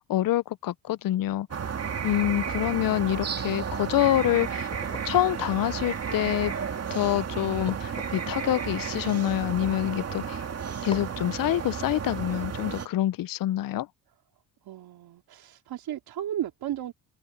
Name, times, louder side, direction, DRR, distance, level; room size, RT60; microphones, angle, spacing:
voice 1, 0.0-1.5 2.0-4.7 5.0-6.5 6.9-10.5 10.8-13.9, left 13 dB, 55° left, 0.7 m, -26 dB
sound 1, 1.5-12.9, right 7 dB, 40° right, 2.2 m, -32 dB
sound 2, 4.7-10.4 10.9-11.3, left 2 dB, 15° left, 7.8 m, -47 dB
voice 2, 14.6-16.9, right 11 dB, 65° right, 3.7 m, -34 dB
cardioid pair, 100°, 40 cm